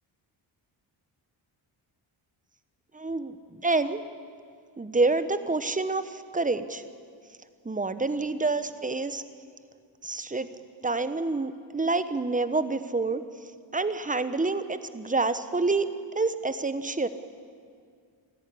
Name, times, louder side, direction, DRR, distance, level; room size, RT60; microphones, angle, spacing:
voice 1, 2.9-4.0 4.8-6.8 7.6-9.2 10.0-10.5 10.8-13.2 13.7-15.9 16.1-17.1, right 3 dB, 15° right, 12 dB, 1.1 m, -27 dB
28.0 x 11.0 x 9.9 m, 2.1 s
cardioid pair, 90°, 47 cm